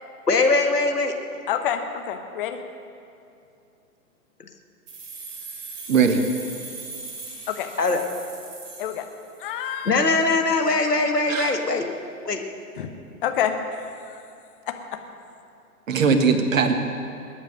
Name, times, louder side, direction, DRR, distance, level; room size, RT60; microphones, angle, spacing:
voice 1, 0.3-1.1 4.4-4.5 7.8-8.0 9.9-11.8 12.2-12.4, left 3 dB, 80° left, 4 dB, 1.7 m, -21 dB
voice 2, 1.5-2.6 7.5-7.7 8.8-9.0 9.4-10.1 12.8-12.9 13.2-13.5 14.1-14.2 14.7-14.8, left 9 dB, 35° left, 6 dB, 1.2 m, -27 dB
sound 1, 4.9-9.6, right 4 dB, 35° right, 4.6 m, -39 dB
voice 3, 5.9-6.2 11.3-11.5 15.9-16.7, right 5 dB, 55° right, 7 dB, 1.6 m, -19 dB
20.0 x 9.2 x 6.6 m, 2.6 s
figure-of-eight pair, 115°, 47 cm